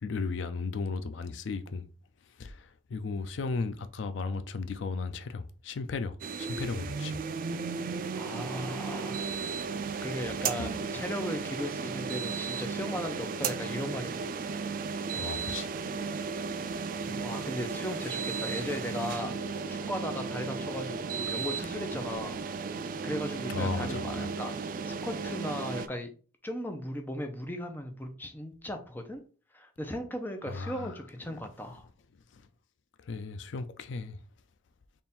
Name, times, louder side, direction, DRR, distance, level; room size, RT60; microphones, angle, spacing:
voice 1, 0.0-1.9 2.4-7.2 9.8-10.0 10.6-10.7 15.1-15.8 23.5-24.3 30.5-30.9 31.2-31.3 33.1-34.2, left 4 dB, 80° left, 0.4 m, -35 dB
sound 1, 6.2-25.9, right 5 dB, 50° right, 0.3 m, -35 dB
voice 2, 8.1-9.2 10.0-14.3 17.0-22.6 23.0-24.6 24.9-26.1 26.4-29.2 29.5-31.8, equal, 10° left, 0.6 m, -37 dB
3.6 x 2.5 x 4.2 m
head